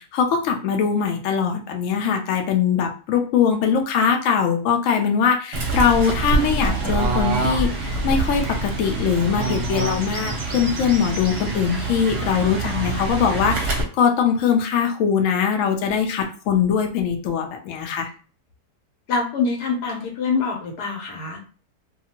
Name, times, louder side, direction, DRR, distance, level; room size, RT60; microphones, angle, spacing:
voice 1, 0.0-18.1, left 7 dB, 65° left, 3 dB, 0.8 m, -21 dB
Fowl / Bird, 5.5-13.8, right 2 dB, 50° right, 0.8 m, -25 dB
voice 2, 19.1-21.4, left 4 dB, 85° left, 1 dB, 1.4 m, -25 dB
2.7 x 2.4 x 2.8 m, 0.38 s
omnidirectional pair, 1.6 m